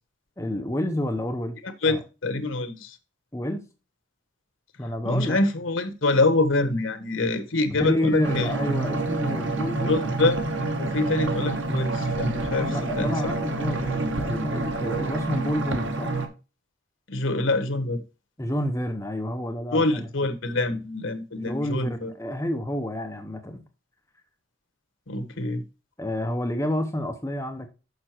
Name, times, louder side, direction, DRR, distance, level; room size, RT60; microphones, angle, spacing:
voice 1, 0.4-1.6 1.9-2.0 3.3-3.6 4.8-5.4 7.8-10.1 12.4-16.1 18.4-20.1 21.4-23.6 26.0-27.7, left 1 dB, 15° left, 0.7 m, -29 dB
voice 2, 1.8-3.0 5.0-8.5 9.9-10.4 10.8-13.3 17.1-18.0 19.7-22.1 25.1-25.6, left 2 dB, 75° left, 1.2 m, -25 dB
sound 1, 8.2-16.3, right 2 dB, 70° right, 1.3 m, -28 dB
6.6 x 5.9 x 4.4 m
head